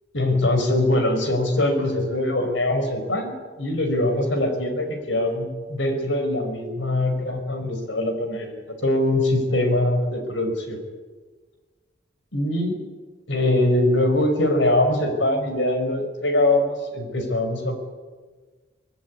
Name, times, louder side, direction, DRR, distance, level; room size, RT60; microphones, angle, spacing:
voice 1, 0.1-3.3 3.6-10.8 12.3-12.8 13.3-17.8, left 1 dB, 70° left, 6 dB, 5.3 m, -22 dB
25.0 x 18.5 x 9.6 m, 1.4 s
head